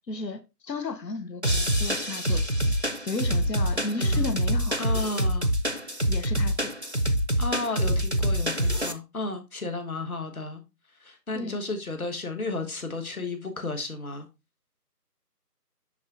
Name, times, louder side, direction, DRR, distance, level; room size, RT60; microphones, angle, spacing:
voice 1, 0.1-2.7 3.1-4.8 6.1-6.7 11.3-11.6, left 3 dB, 85° left, 0.9 m, -34 dB
sound 1, 1.4-8.9, equal, 45° right, 0.4 m, -25 dB
voice 2, 4.0-4.5 4.8-5.5 7.4-10.6 11.0-14.3, left 3 dB, 60° left, 1.4 m, -33 dB
11.0 x 3.6 x 2.5 m
figure-of-eight pair, 170°, 49 cm